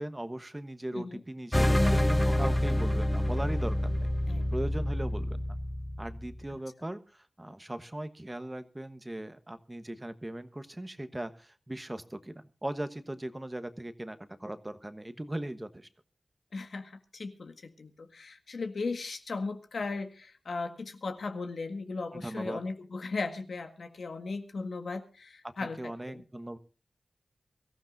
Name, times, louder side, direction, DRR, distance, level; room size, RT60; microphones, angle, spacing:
voice 1, 0.0-4.1 4.5-5.4 6.0-15.9 22.1-22.6 25.4-26.6, right 1 dB, 20° right, 11 dB, 1.1 m, -39 dB
sound 1, 1.5-6.4, left 1 dB, 15° left, 0.8 m, -27 dB
voice 2, 16.5-26.2, left 3 dB, 80° left, 6 dB, 1.7 m, -37 dB
24.0 x 14.5 x 2.6 m, 0.33 s
wide cardioid pair, 80°, 0 cm